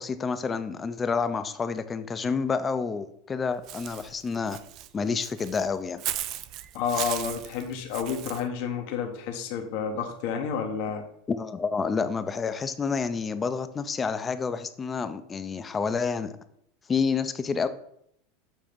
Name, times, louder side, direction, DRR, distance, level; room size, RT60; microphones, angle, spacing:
voice 1, 0.0-4.6 4.9-6.0 11.3-16.3 16.9-17.7, left 5 dB, 20° left, 11 dB, 0.5 m, -29 dB
Walk footsteps / Bird, 3.7-8.4, right 13 dB, 50° right, 0.4 m, -36 dB
voice 2, 6.7-11.0, left 7 dB, 65° left, 4 dB, 1.0 m, -30 dB
7.2 x 2.8 x 5.1 m, 0.71 s
supercardioid pair, 120°, 0 cm